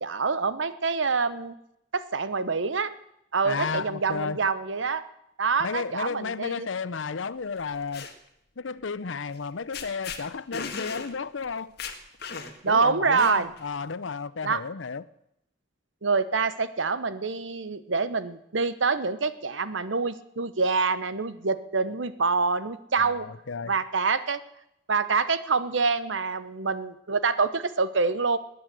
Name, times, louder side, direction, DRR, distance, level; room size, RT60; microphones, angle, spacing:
voice 1, 0.0-1.5 1.9-2.9 3.3-5.0 5.4-6.7 12.6-13.5 14.4-14.6 16.0-23.3 23.7-24.4 24.9-28.4, right 4 dB, 80° right, 1.0 m, -26 dB
voice 2, 3.4-4.4 5.6-8.1 8.6-11.7 12.7-15.0 23.0-23.7, left 5 dB, 85° left, 0.7 m, -33 dB
sound 1, 7.6-8.1 9.4-9.5 9.7-10.2 10.5-11.1 11.4-11.5 11.8-12.7 13.2-13.6, left 5 dB, 55° left, 1.8 m, -36 dB
19.5 x 9.6 x 7.7 m
head